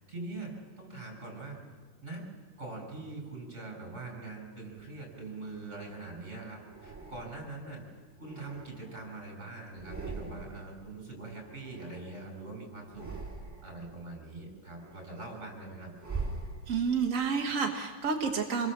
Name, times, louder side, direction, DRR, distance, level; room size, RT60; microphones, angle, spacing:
voice 1, 0.1-1.6 2.0-2.2 2.6-7.8 8.2-13.1 13.6-15.9, right 3 dB, 20° right, 3 dB, 6.1 m, -43 dB
sound 1, 4.8-6.0 6.7-7.6 8.1-9.3 9.7-10.8 11.0-12.4 12.8-13.9 14.3-17.1, right 3 dB, 5° right, 3.6 m, -43 dB
voice 2, 16.7-18.7, right 5 dB, 45° right, 2 dB, 1.0 m, -29 dB
27.0 x 21.0 x 7.4 m, 1.4 s
omnidirectional pair, 3.7 m